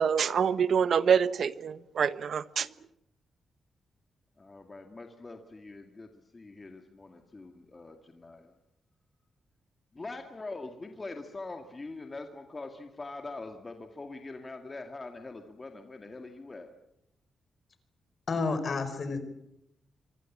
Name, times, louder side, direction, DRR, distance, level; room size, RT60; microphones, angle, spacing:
voice 1, 0.0-2.7, right 7 dB, 60° right, 0.9 m, -26 dB
voice 2, 4.4-8.5 9.9-16.7, left 3 dB, 25° left, 2.1 m, -43 dB
voice 3, 18.3-19.2, left 4 dB, 45° left, 5.0 m, -30 dB
26.0 x 25.0 x 7.4 m
wide cardioid pair, 130°, 0 cm